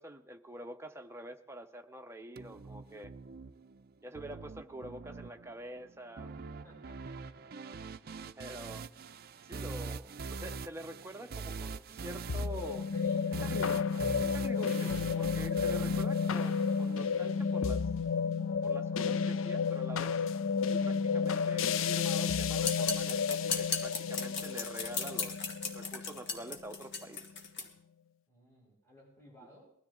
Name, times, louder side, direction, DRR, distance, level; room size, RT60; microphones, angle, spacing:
voice 1, 0.0-3.1 4.0-6.3 8.4-8.8 9.4-12.9 13.4-17.9 18.6-20.1 20.7-25.5 25.7-27.2, right 1 dB, 15° right, 5 dB, 0.9 m, -46 dB
sound 1, 2.4-17.4, right 4 dB, 50° right, 0.5 m, -44 dB
voice 2, 6.6-7.7 12.9-13.4 28.3-29.7, right 1 dB, 15° left, -5 dB, 7.9 m, -59 dB
sound 2, 12.3-26.7, left 6 dB, 85° left, 0.5 m, -32 dB
sound 3, 22.6-27.7, left 5 dB, 60° left, 1.9 m, -36 dB
21.0 x 13.0 x 3.9 m, 0.68 s
head